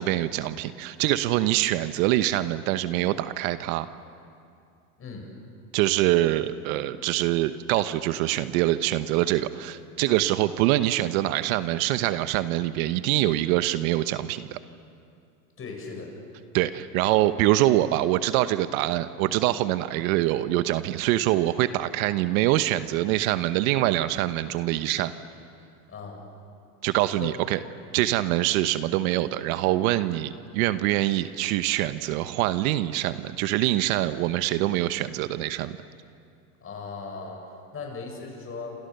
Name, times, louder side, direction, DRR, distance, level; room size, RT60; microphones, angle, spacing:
voice 1, 0.0-3.9 5.7-14.6 16.5-25.1 26.8-27.6 27.9-35.8, right 15 dB, 60° right, 12 dB, 1.1 m, -24 dB
voice 2, 5.0-5.3 15.6-16.1 25.9-26.2 27.1-27.3 36.6-37.4 37.7-38.8, left 4 dB, 30° left, 1 dB, 8.0 m, -37 dB
28.5 x 28.0 x 6.8 m, 2.4 s
supercardioid pair, 115°, 46 cm